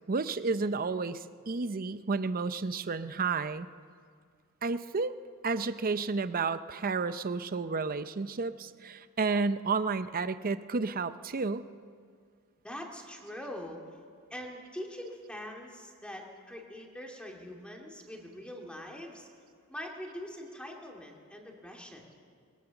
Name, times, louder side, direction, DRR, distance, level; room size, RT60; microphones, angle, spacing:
voice 1, 0.1-3.7 4.6-5.1 5.4-11.6, right 4 dB, 40° right, 12 dB, 0.6 m, -31 dB
voice 2, 12.6-13.8 14.3-19.3 19.7-22.0, left 1 dB, 5° left, 0 dB, 2.3 m, -43 dB
21.5 x 18.0 x 7.1 m, 2.1 s
head